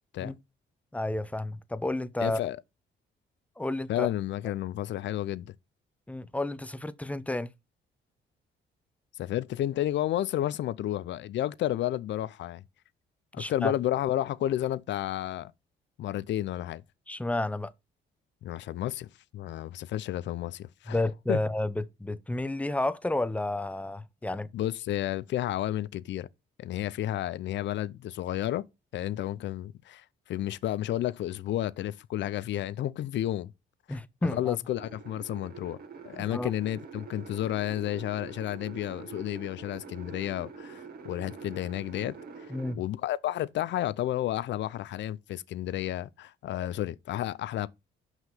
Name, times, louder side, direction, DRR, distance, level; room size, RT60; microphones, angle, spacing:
voice 1, 0.9-2.4 3.6-4.1 6.1-7.5 13.4-13.7 17.1-17.7 20.9-24.5 33.9-34.6 36.1-36.5 42.5-42.8, left 2 dB, 5° left, 0.6 m, -31 dB
voice 2, 2.2-2.6 3.9-5.5 9.2-12.6 13.3-15.5 16.0-16.8 18.4-19.1 19.3-21.0 21.3-21.4 24.5-26.3 26.6-28.6 28.9-33.5 33.9-35.8 36.0-47.7, left 13 dB, 65° left, 0.5 m, -31 dB
sound 1, 34.8-42.7, right 5 dB, 50° right, 1.7 m, -45 dB
6.0 x 5.7 x 5.5 m
cardioid pair, 90°, 20 cm